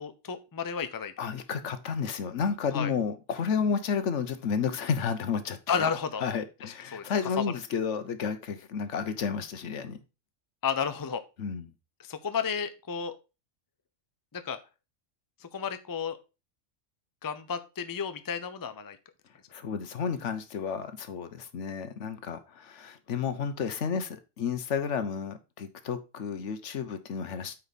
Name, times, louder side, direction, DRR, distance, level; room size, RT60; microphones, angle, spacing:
voice 1, 0.0-1.1 2.7-2.9 5.7-6.2 6.6-7.0 10.6-11.2 12.0-13.1 14.3-14.6 15.4-16.2 17.2-19.0, left 6 dB, 25° left, 0.5 m, -32 dB
voice 2, 1.2-5.6 6.2-10.0 11.4-11.7 19.5-27.6, left 6 dB, 75° left, 1.2 m, -31 dB
8.7 x 4.5 x 4.1 m
omnidirectional pair, 1.3 m